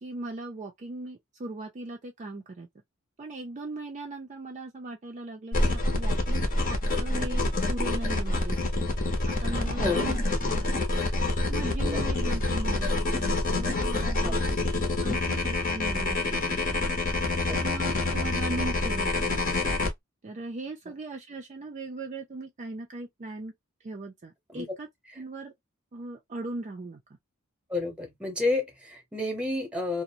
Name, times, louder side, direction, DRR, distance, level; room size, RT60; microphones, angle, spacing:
voice 1, 0.0-2.7 3.2-10.2 10.5-10.9 11.5-16.9 17.5-19.5 20.2-23.5 23.8-24.9 25.1-25.5 25.9-27.0, right 2 dB, 35° right, 0.4 m, -39 dB
sound 1, 5.5-19.9, left 2 dB, 40° left, 0.8 m, -27 dB
voice 2, 17.3-17.6 24.5-24.8 27.7-30.0, left 2 dB, 5° right, 0.9 m, -30 dB
2.5 x 2.0 x 2.7 m
head